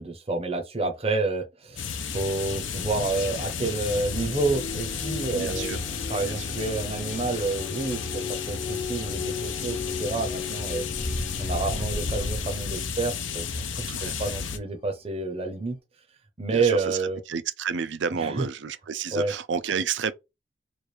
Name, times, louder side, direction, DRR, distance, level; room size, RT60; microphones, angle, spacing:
voice 1, 0.0-1.9 2.1-5.8 6.1-10.8 11.4-15.8 16.4-17.2 18.2-18.5 19.1-19.3, right 3 dB, 30° right, 0.7 m, -29 dB
sound 1, 1.7-15.1, left 3 dB, 40° left, 0.7 m, -37 dB
sound 2, 1.8-14.6, left 6 dB, 85° left, 0.6 m, -33 dB
voice 2, 5.3-5.8 6.2-6.5 13.9-14.2 16.5-20.1, right 6 dB, 70° right, 0.5 m, -31 dB
3.2 x 2.4 x 4.4 m
head